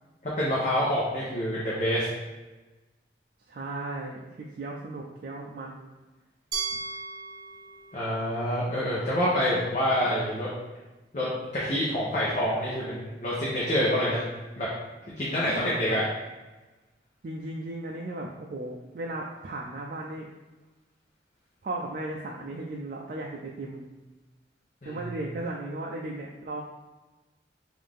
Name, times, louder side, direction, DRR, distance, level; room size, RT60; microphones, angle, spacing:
voice 1, 0.2-2.1 7.9-10.5 11.1-14.2 14.6-14.7 15.2-16.0 24.8-25.0, equal, 45° left, -7 dB, 0.9 m, -27 dB
voice 2, 3.5-5.9 15.5-16.0 17.2-20.3 21.6-23.9 24.8-26.6, right 2 dB, 50° right, -1 dB, 0.4 m, -36 dB
Glass, 6.5-9.4, right 5 dB, 20° right, 0.9 m, -38 dB
5.4 x 2.6 x 3.5 m, 1.2 s
head